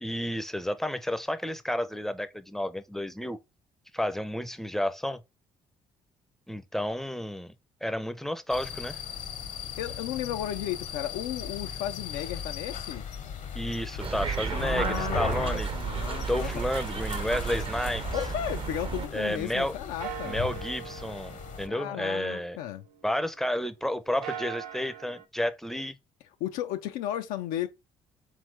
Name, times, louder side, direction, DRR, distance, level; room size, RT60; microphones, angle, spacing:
voice 1, 0.0-3.4 3.9-5.2 6.5-7.5 7.8-9.0 13.5-15.7 16.2-18.0 19.1-19.7 20.2-22.6 23.0-26.0, left 1 dB, ahead, 0.5 m, -31 dB
sound 1, 8.5-21.7, left 8 dB, 60° left, 0.8 m, -38 dB
voice 2, 9.8-13.0 14.5-16.5 18.1-20.4 21.7-22.8 26.4-27.7, left 12 dB, 85° left, 0.4 m, -34 dB
sound 2, 14.0-19.1, right 6 dB, 40° right, 0.6 m, -32 dB
sound 3, 17.8-19.6 20.0-23.5 24.0-25.2, right 9 dB, 85° right, 0.4 m, -43 dB
3.5 x 3.2 x 3.2 m
supercardioid pair, 65°, 14 cm